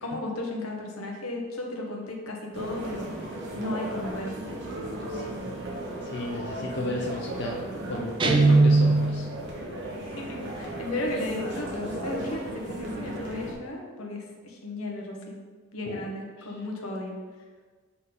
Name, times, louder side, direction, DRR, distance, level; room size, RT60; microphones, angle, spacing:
voice 1, 0.0-3.1 3.5-4.5 10.0-15.4 15.7-17.2, left 1 dB, 90° left, 0 dB, 1.1 m, -34 dB
sound 1, 2.5-13.5, right 1 dB, 55° right, 1.1 m, -35 dB
voice 2, 4.7-5.5 6.0-7.6 7.9-9.3 15.9-16.1 16.4-16.5, left 2 dB, 55° left, -1 dB, 0.6 m, -34 dB
Guitar, 8.2-9.4, right 3 dB, 25° right, 0.4 m, -19 dB
7.3 x 3.9 x 3.9 m, 1.4 s
head